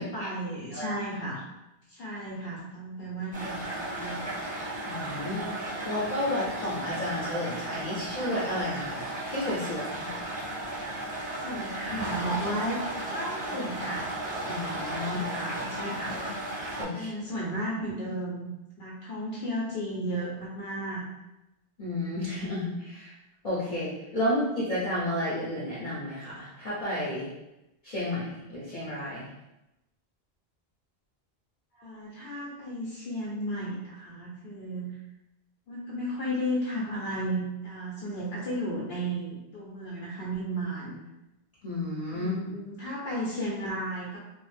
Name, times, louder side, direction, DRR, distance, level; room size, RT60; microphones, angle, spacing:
voice 1, 0.0-1.5 1.9-4.4 11.3-12.8 13.1-14.0 15.1-16.2 16.9-18.5 18.8-21.1 31.7-35.0 35.7-41.0 42.1-44.2, right 1 dB, 75° left, -5 dB, 0.8 m, -34 dB
sound 1, 3.3-16.8, right 1 dB, 10° right, 0.6 m, -35 dB
voice 2, 4.9-5.5 5.8-10.1 14.5-15.2 16.8-17.1 21.8-23.1 23.4-27.3 27.8-29.3 41.6-42.3, left 1 dB, 45° left, -9 dB, 0.6 m, -31 dB
2.4 x 2.0 x 3.1 m, 0.93 s
omnidirectional pair, 1.1 m